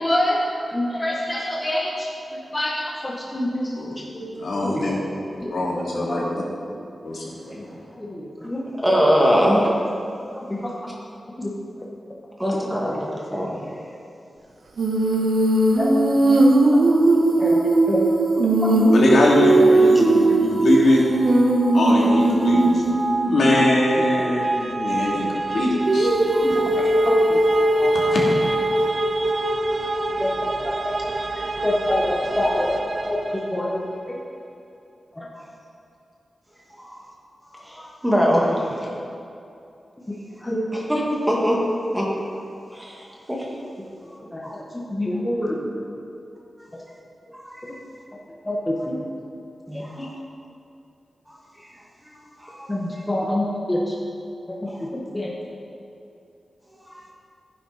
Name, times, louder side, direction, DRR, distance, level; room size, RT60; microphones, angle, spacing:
voice 1, 0.0-3.7 4.0-4.3 4.6-5.1 5.4-6.5 7.5-7.6 7.9-8.6 9.2-9.3 10.4-10.7 11.4-11.5 12.7-12.8 15.8-15.9 17.4-17.6 17.9-18.0 18.6-19.0 26.4-27.4 27.7-27.9 30.2-30.7 31.4-32.8 33.0-33.8 34.1-34.2 35.1-35.3 40.1-40.2 40.4-40.6 44.2-45.7 46.7-46.8 48.4-49.1 49.7-50.1 52.7-54.0 54.5-55.3, left 1 dB, 15° left, -4 dB, 1.3 m, -27 dB
voice 2, 4.3-5.0 5.5-6.4 7.0-7.8 18.9-21.0 21.7-22.8 23.3-26.1 26.4-26.9 27.9-28.2, left 2 dB, 75° left, -5 dB, 2.9 m, -22 dB
voice 3, 8.8-9.8 10.3-10.4 12.4-14.0 26.3-26.4 36.7-37.1 37.5-38.8 40.9-41.6 41.9-42.1 42.7-43.5 44.4-44.6 47.3-47.8 49.7-50.1 51.3-51.7 52.0-52.7 56.9-57.1, equal, 5° right, -3 dB, 2.0 m, -23 dB
Female singing, 14.8-23.7 25.9-30.1, right 2 dB, 75° right, 1.4 m, -19 dB
sound 1, 21.1-33.9, right 3 dB, 40° right, 0.7 m, -29 dB
16.0 x 10.5 x 4.2 m, 2.6 s
wide cardioid pair, 165°, 0 cm